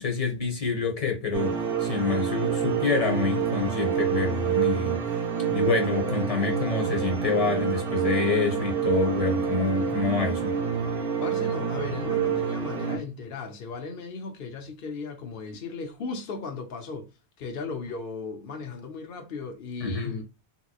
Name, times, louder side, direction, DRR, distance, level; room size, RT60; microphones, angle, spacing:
voice 1, 0.0-5.0 5.5-10.6 19.8-20.1, left 4 dB, 35° left, 1.0 m, -27 dB
sound 1, 1.3-13.0, right 7 dB, 60° right, 0.9 m, -27 dB
voice 2, 11.2-20.2, left 4 dB, 60° left, 0.9 m, -36 dB
3.7 x 3.0 x 2.3 m
omnidirectional pair, 1.1 m